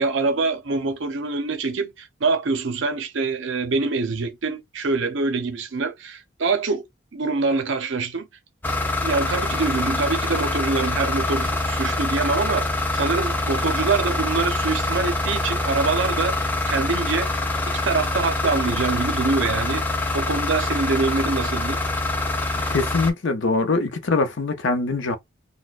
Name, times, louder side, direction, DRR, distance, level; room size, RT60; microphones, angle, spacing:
voice 1, 0.0-6.9 7.1-8.3 9.0-17.3 17.6-19.9 20.1-21.8, right 4 dB, 70° right, 0.6 m, -25 dB
sound 1, 8.6-23.1, left 2 dB, 10° left, 0.4 m, -25 dB
voice 2, 22.7-25.2, left 3 dB, 70° left, 0.6 m, -23 dB
4.1 x 2.1 x 2.4 m
head